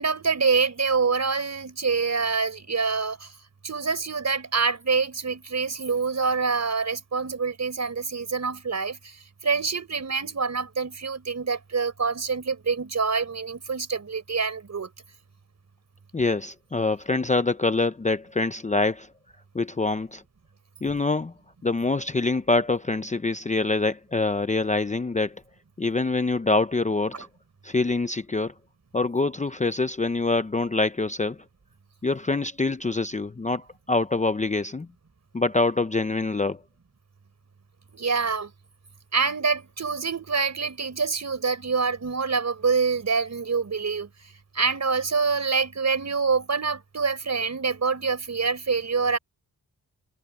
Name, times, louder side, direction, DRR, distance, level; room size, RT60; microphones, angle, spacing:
voice 1, 0.0-3.3 3.6-9.1 9.4-14.9 37.9-38.5 39.1-44.1 44.5-49.2, right 5 dB, 45° right, 5.0 m, -26 dB
voice 2, 16.1-19.1 19.5-20.2 20.8-21.3 21.6-25.4 25.8-27.3 27.6-28.5 28.9-31.4 32.0-34.9 35.3-36.6, left 3 dB, 20° left, 0.6 m, -25 dB
wide cardioid pair, 120°, 36 cm